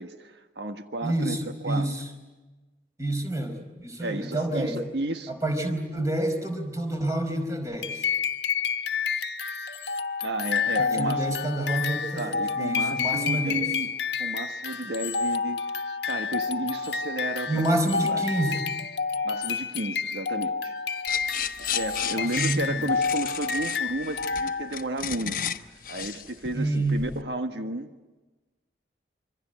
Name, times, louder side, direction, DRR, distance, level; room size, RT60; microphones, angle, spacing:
voice 1, 0.0-1.4 1.6-1.9 4.0-5.3 10.2-11.3 12.2-13.9 14.2-17.6 18.1-18.2 19.2-20.7 21.6-25.4 25.9-27.9, right 2 dB, 75° right, 6 dB, 1.6 m, -33 dB
voice 2, 1.0-2.0 3.0-4.8 5.3-8.1 10.8-13.6 17.5-18.6 22.1-22.8 26.5-27.1, right 1 dB, 20° right, 6 dB, 4.8 m, -28 dB
sound 1, 7.8-24.9, left 5 dB, 80° left, 1.3 m, -29 dB
sound 2, 21.1-27.2, left 9 dB, 50° left, 1.0 m, -33 dB
26.5 x 25.0 x 9.0 m, 1.2 s
head